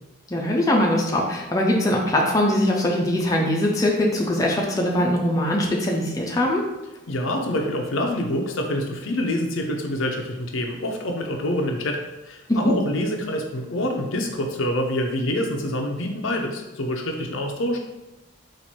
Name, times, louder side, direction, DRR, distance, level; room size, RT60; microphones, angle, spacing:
voice 1, 0.3-6.6 12.5-12.7, left 1 dB, 15° left, -1 dB, 0.5 m, -21 dB
voice 2, 7.1-12.0 12.3-17.8, left 1 dB, 70° left, 3 dB, 0.6 m, -26 dB
4.3 x 2.5 x 4.4 m, 1.1 s
head